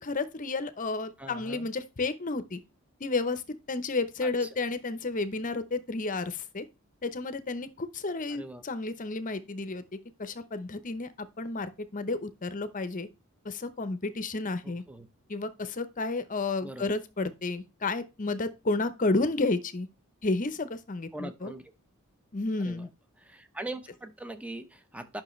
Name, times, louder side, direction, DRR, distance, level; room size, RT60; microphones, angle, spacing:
voice 1, 0.0-2.6 3.0-3.4 3.7-6.7 7.0-13.1 13.4-14.8 15.3-19.9 20.2-21.5 22.3-22.9, left 3 dB, 35° left, 0.8 m, -31 dB
voice 2, 1.2-1.7 4.2-4.5 8.3-8.6 14.6-15.1 16.6-16.9 21.1-21.6 22.6-22.9 23.2-25.2, right 2 dB, 5° right, 0.8 m, -41 dB
10.5 x 6.0 x 3.2 m
head